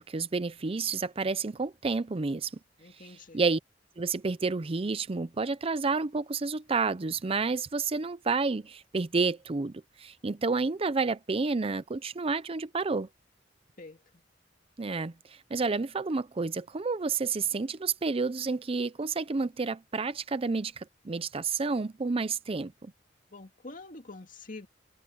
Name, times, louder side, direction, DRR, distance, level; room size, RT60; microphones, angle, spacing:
voice 1, 0.0-2.5 3.0-3.6 4.0-13.1 14.8-22.9, right 4 dB, 30° right, 0.5 m, -30 dB
voice 2, 2.8-3.4 13.8-14.0 23.3-24.7, left 2 dB, 45° left, 2.4 m, -46 dB
head